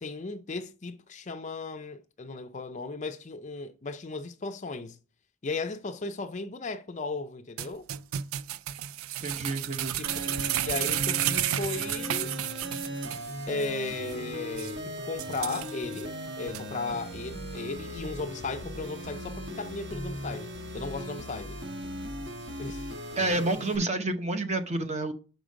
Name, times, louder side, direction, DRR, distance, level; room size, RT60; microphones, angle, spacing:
voice 1, 0.0-5.0 5.4-7.9 10.0-12.3 13.5-21.6 22.6-23.0, left 3 dB, 35° left, 0.5 m, -36 dB
sound 1, 7.6-13.3 13.6-13.7 14.1-14.2 14.6-14.7 15.2-16.0 16.5-16.6, right 12 dB, 75° right, 0.4 m, -32 dB
voice 2, 9.2-10.0 23.2-25.1, right 2 dB, 30° right, 0.8 m, -29 dB
sound 2, 10.1-23.8, equal, 55° right, 1.4 m, -38 dB
6.4 x 5.0 x 5.1 m
head